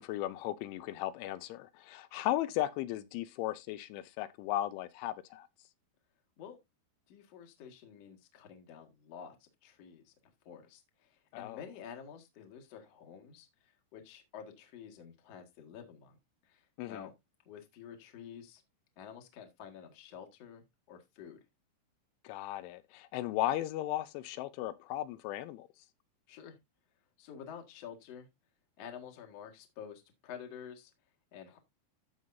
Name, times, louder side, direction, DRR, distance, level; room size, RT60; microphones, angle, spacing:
voice 1, 0.0-5.5 11.3-11.6 16.8-17.1 22.2-25.7, left 14 dB, 85° left, 3.0 m, -36 dB
voice 2, 7.1-10.1 10.5-16.2 16.4-17.1 17.5-18.6 19.0-21.4 26.3-26.6 27.2-28.3 28.8-30.9 31.3-31.6, left 8 dB, 50° left, 2.0 m, -50 dB
14.5 x 5.5 x 2.6 m
omnidirectional pair, 5.4 m